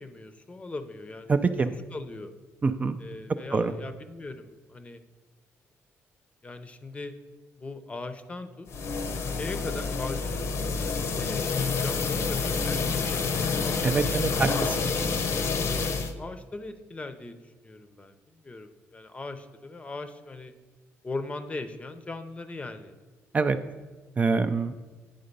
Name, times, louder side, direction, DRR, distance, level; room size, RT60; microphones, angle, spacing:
voice 1, 0.0-1.3 1.9-2.3 3.0-5.0 6.4-7.2 7.6-8.7 9.4-14.2 15.6-17.4 17.6-20.5 21.0-22.9, left 3 dB, 25° left, 9 dB, 0.6 m, -40 dB
voice 2, 1.3-1.7 2.6-3.0 3.5-3.7 13.8-14.9 23.3-23.6 24.2-24.7, right 4 dB, 30° right, 9 dB, 0.4 m, -25 dB
sound 1, 8.7-16.1, left 4 dB, 60° left, 0.7 m, -28 dB
9.7 x 3.8 x 5.3 m, 1.3 s
cardioid pair, 105°, 5 cm